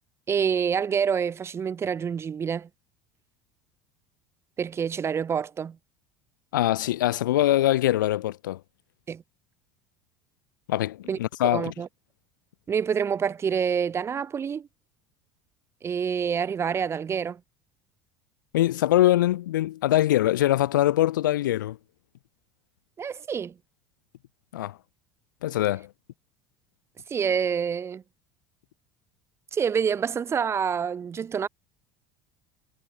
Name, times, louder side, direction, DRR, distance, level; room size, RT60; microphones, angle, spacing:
voice 1, 0.3-2.7 4.6-5.8 9.1-9.2 11.1-11.2 11.5-11.9 12.7-14.7 15.8-17.4 23.0-23.5 27.1-28.0 29.5-31.5, right 7 dB, 25° right, 0.5 m, -27 dB
voice 2, 6.5-8.6 10.7-11.7 18.5-21.8 24.5-24.8 25.4-25.9, left 14 dB, 75° left, 0.4 m, -23 dB
figure-of-eight pair, 70°, 11 cm